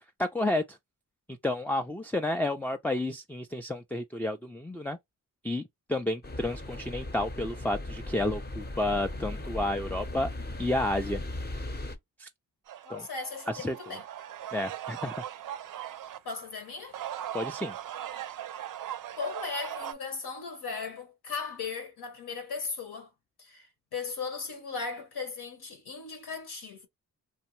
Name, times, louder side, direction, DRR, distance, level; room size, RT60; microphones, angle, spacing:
voice 1, 0.2-0.8 1.3-5.0 5.4-10.3 10.6-11.2 12.2-12.3 12.9-13.1 13.5-13.8 14.5-15.1 17.3-17.8, left 1 dB, 5° left, 0.4 m, -31 dB
sound 1, 6.2-12.0, left 1 dB, 25° left, 0.8 m, -38 dB
sound 2, 12.7-16.2 16.8-19.9, right 11 dB, 55° right, 0.5 m, -39 dB
voice 2, 12.8-14.0 16.2-17.0 19.1-23.1 23.4-26.9, left 4 dB, 65° left, 1.1 m, -37 dB
2.6 x 2.0 x 3.0 m
supercardioid pair, 45°, 41 cm